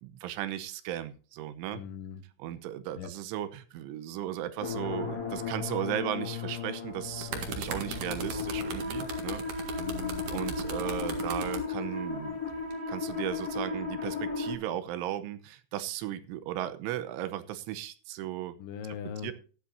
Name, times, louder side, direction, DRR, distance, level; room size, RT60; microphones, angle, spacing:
voice 1, 0.0-1.8 2.4-9.6 10.3-12.4 12.9-18.5 19.2-19.3, right 12 dB, 85° right, 12 dB, 3.2 m, -36 dB
voice 2, 1.7-2.2 2.9-3.1 9.8-10.3 18.6-19.3, left 7 dB, 75° left, 9 dB, 3.3 m, -40 dB
sound 1, 4.6-14.5, left 5 dB, 25° left, 2.4 m, -35 dB
sound 2, 6.9-11.6 12.5-12.7, right 5 dB, 55° right, 2.6 m, -38 dB
15.5 x 10.5 x 2.7 m, 0.37 s
omnidirectional pair, 5.6 m